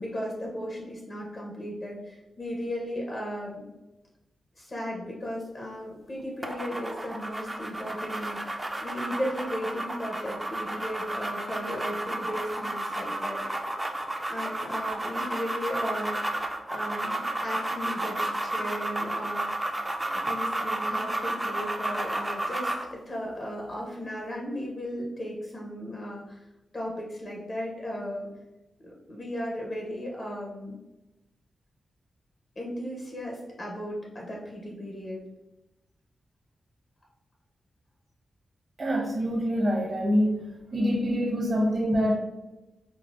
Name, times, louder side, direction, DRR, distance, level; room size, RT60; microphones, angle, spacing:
voice 1, 0.0-3.7 4.6-13.5 14.3-16.4 16.7-19.7 20.1-22.7 23.1-26.5 26.7-28.3 28.8-30.8 32.6-35.2, equal, 45° left, -2 dB, 0.7 m, -36 dB
sound 1, 6.4-22.9, right 1 dB, 20° right, 0.4 m, -32 dB
voice 2, 38.8-40.4 40.7-42.2, equal, 50° right, -1 dB, 0.8 m, -25 dB
4.0 x 2.1 x 2.3 m, 0.98 s
cardioid pair, 75°, 0 cm